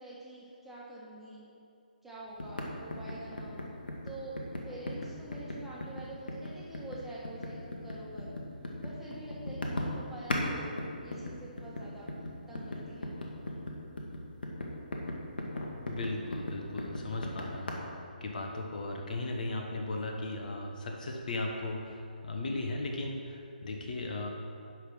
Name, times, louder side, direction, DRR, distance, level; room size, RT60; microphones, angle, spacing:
voice 1, 0.0-1.4 2.0-3.6 4.0-8.4 8.8-10.7 11.0-12.1 12.5-13.1 13.5-13.6, right 2 dB, 5° right, -8 dB, 1.4 m, -46 dB
sound 1, 2.4-10.5 10.8-17.7, left 1 dB, 75° left, 1.4 m, -37 dB
voice 2, 15.9-24.3, left 2 dB, 55° left, 1 dB, 1.1 m, -37 dB
10.5 x 3.6 x 6.1 m, 2.5 s
figure-of-eight pair, 150°, 5 cm